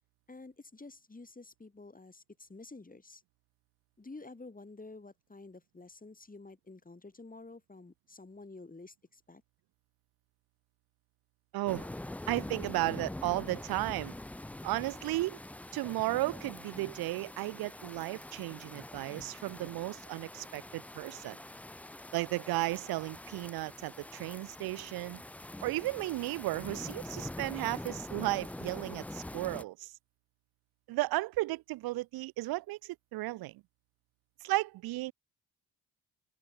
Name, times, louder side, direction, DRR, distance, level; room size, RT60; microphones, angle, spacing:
voice 1, 0.3-3.2 4.0-9.4, left 3 dB, 20° left, 3.9 m, -50 dB
voice 2, 11.5-11.9 12.3-14.2 14.6-15.4 15.7-21.4 22.1-25.2 25.6-29.9 30.9-33.6 34.4-35.1, right 19 dB, 70° right, 0.5 m, -34 dB
sound 1, 11.7-29.6, left 1 dB, 5° left, 0.4 m, -44 dB
open air
supercardioid pair, 65°, 38 cm